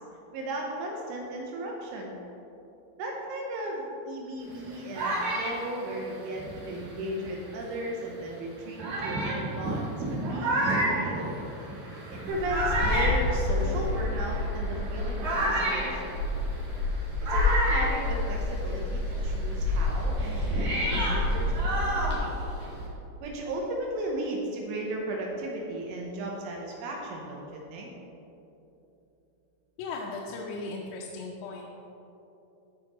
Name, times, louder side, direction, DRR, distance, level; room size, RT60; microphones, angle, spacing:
voice 1, 0.3-2.1 3.0-11.3 12.3-16.2 17.2-22.3 23.2-27.4 27.7-27.9, right 1 dB, 80° right, -1 dB, 3.1 m, -35 dB
sound 1, 4.5-7.5 8.2-8.3 8.8-18.8 19.1-22.9, right 1 dB, 55° right, 2.9 m, -31 dB
Wind, 12.3-22.3, left 2 dB, 65° left, 1.4 m, -29 dB
voice 2, 29.8-31.6, left 3 dB, 85° left, -2 dB, 3.4 m, -37 dB
14.0 x 5.6 x 3.0 m, 2.9 s
omnidirectional pair, 5.9 m